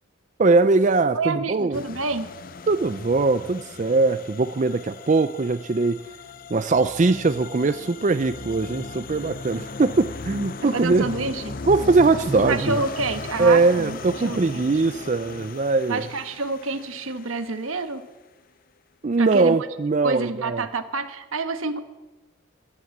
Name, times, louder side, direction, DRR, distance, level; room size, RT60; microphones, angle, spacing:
voice 1, 0.4-1.8 2.7-6.0 6.5-11.1 11.7-12.8 13.4-16.0 19.0-20.6, right 3 dB, 35° right, 11 dB, 0.4 m, -21 dB
voice 2, 1.1-2.3 10.7-11.6 12.4-14.7 15.9-18.1 19.2-19.5 20.0-21.8, right 3 dB, 85° right, 9 dB, 1.3 m, -28 dB
sound 1, 1.7-17.9, left 3 dB, 40° left, 0.6 m, -37 dB
16.0 x 12.5 x 7.2 m, 1.1 s
head